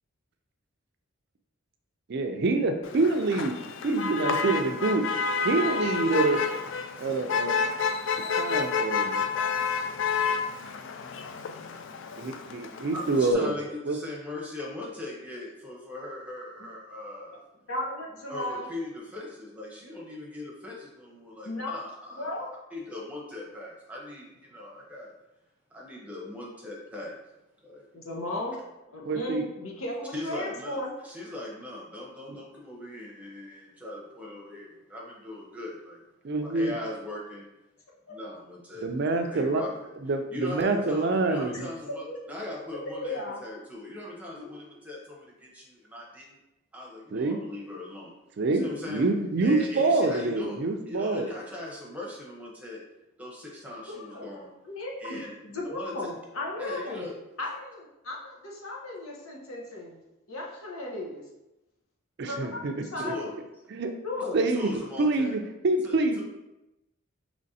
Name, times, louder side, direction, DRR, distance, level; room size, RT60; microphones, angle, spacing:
voice 1, 2.1-3.5 3.8-5.0 5.4-6.4 7.0-7.6 8.4-9.2 12.2-13.6 13.9-14.0 29.0-29.5 36.2-36.7 38.8-39.6 40.0-41.7 47.1-47.4 48.4-51.3 62.2-62.7 63.7-63.9 64.3-64.7 65.0-66.2, right 3 dB, 50° right, 6 dB, 0.4 m, -26 dB
Motor vehicle (road), 2.8-13.3, left 5 dB, 60° left, 0.3 m, -30 dB
voice 2, 12.4-17.4 18.3-22.4 22.7-25.1 25.7-27.2 27.6-27.8 30.1-36.0 36.4-37.5 38.1-39.9 40.3-46.4 46.7-48.1 48.5-49.0 49.4-50.6 50.9-52.8 53.2-54.5 55.0-55.3 55.6-56.1 56.6-57.2 63.0-63.3 64.5-65.4 65.8-66.2, left 2 dB, 5° right, -3 dB, 0.8 m, -39 dB
voice 3, 17.7-18.7 21.4-21.8 22.1-22.5 27.9-28.6 28.9-30.9 42.1-42.2 43.0-43.4 44.4-44.6 53.9-54.3 54.6-57.1 57.4-60.0 60.3-61.2 62.3-62.6 62.9-63.3 64.0-64.4, left 2 dB, 80° left, -1 dB, 0.9 m, -35 dB
5.2 x 3.1 x 2.7 m, 0.95 s
head